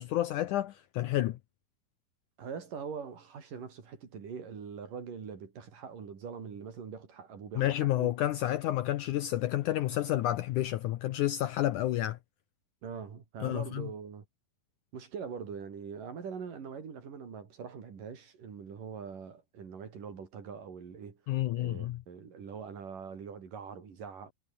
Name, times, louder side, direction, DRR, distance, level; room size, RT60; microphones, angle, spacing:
voice 1, 0.0-1.4 7.6-12.2 13.4-13.9 21.3-22.0, left 14 dB, 75° left, 2.0 m, -30 dB
voice 2, 2.4-8.1 12.8-14.3 14.9-21.2 21.6-24.3, right 6 dB, 60° right, 5.2 m, -43 dB
omnidirectional pair, 4.3 m